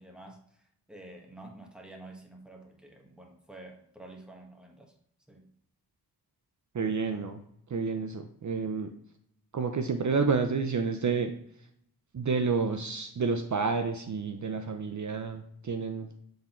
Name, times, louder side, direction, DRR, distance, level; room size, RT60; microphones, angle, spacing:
voice 1, 0.0-4.9 5.3-5.5, right 2 dB, ahead, 0 dB, 1.4 m, -49 dB
voice 2, 6.7-7.4 7.7-8.9 9.5-11.3 12.1-16.1, right 5 dB, 50° right, 6 dB, 0.6 m, -29 dB
7.9 x 3.8 x 4.3 m, 0.70 s
wide cardioid pair, 75°, 38 cm